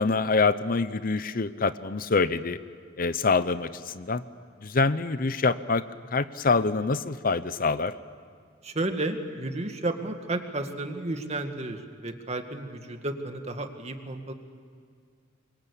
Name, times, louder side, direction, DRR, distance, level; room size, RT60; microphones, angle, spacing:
voice 1, 0.0-2.6 3.0-4.2 4.6-5.8 6.1-7.9, left 4 dB, 50° left, 14 dB, 0.7 m, -25 dB
voice 2, 8.6-14.3, right 2 dB, 35° right, 6 dB, 2.0 m, -32 dB
27.5 x 23.5 x 8.4 m, 2.2 s
head